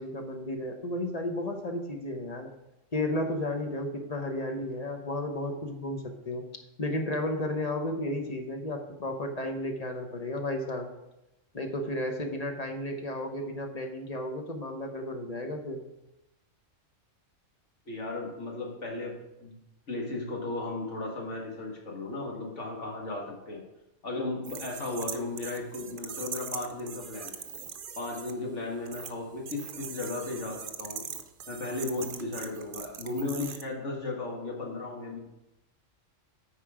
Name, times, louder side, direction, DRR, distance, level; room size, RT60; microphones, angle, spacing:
voice 1, 0.0-2.5 2.9-6.4 6.8-10.9 11.5-15.8, left 1 dB, 35° left, 4 dB, 0.9 m, -33 dB
voice 2, 17.9-19.1 19.4-19.6 19.9-23.6 24.0-27.4 28.0-31.1 31.5-35.2, left 2 dB, 70° left, -1 dB, 2.0 m, -35 dB
sound 1, 24.4-28.3 28.9-29.1 29.5-33.6, right 7 dB, 50° right, 0.7 m, -41 dB
9.0 x 4.9 x 4.9 m, 0.91 s
omnidirectional pair, 1.3 m